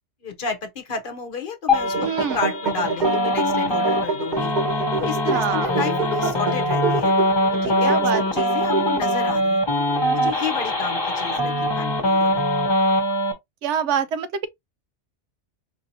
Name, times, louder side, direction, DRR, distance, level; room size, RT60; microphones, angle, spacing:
voice 1, 0.2-7.1 7.5-12.4, left 6 dB, 50° left, 0.9 m, -32 dB
sound 1, 1.7-13.3, left 1 dB, 25° left, 1.1 m, -22 dB
sound 2, 1.7-9.3, right 4 dB, 50° right, 0.7 m, -28 dB
voice 2, 2.0-2.4 5.3-5.8 7.8-8.5 13.6-14.5, right 7 dB, 80° right, 0.9 m, -25 dB
4.5 x 2.7 x 2.6 m
omnidirectional pair, 1.2 m